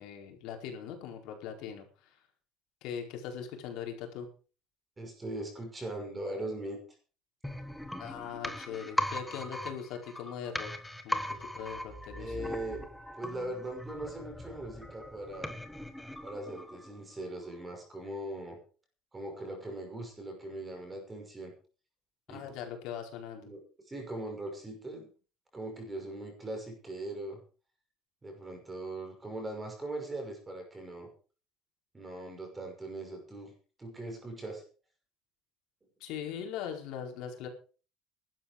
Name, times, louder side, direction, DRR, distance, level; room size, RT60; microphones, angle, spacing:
voice 1, 0.0-2.2 2.8-4.3 8.0-10.7 11.0-11.2 11.5-12.3 22.3-23.4 36.0-37.5, left 8 dB, 65° left, 3 dB, 4.6 m, -40 dB
voice 2, 5.0-6.8 12.2-12.8 13.2-15.5 16.2-18.6 19.1-21.5 22.3-22.5 23.4-25.1 25.5-27.4 28.2-31.1 31.9-33.5 33.8-34.6, right 1 dB, 10° right, 3 dB, 5.7 m, -40 dB
sound 1, 7.4-17.1 17.4-17.5, left 1 dB, 5° left, 1.4 m, -39 dB
15.5 x 12.5 x 5.2 m, 0.38 s
cardioid pair, 175°, 0 cm